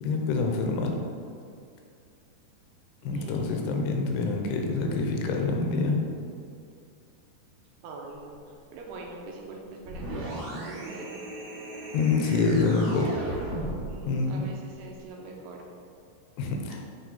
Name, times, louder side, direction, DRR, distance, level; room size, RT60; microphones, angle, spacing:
voice 1, 0.0-1.0 3.0-6.0 11.9-13.1 14.0-14.4 16.4-16.8, left 4 dB, 85° left, 2 dB, 2.9 m, -26 dB
voice 2, 3.1-3.9 7.8-11.2 13.9-15.6, right 3 dB, 75° right, 0 dB, 2.7 m, -43 dB
sound 1, 9.8-14.0, right 1 dB, 55° right, 2.3 m, -36 dB
7.5 x 6.4 x 4.1 m, 2.4 s
omnidirectional pair, 4.9 m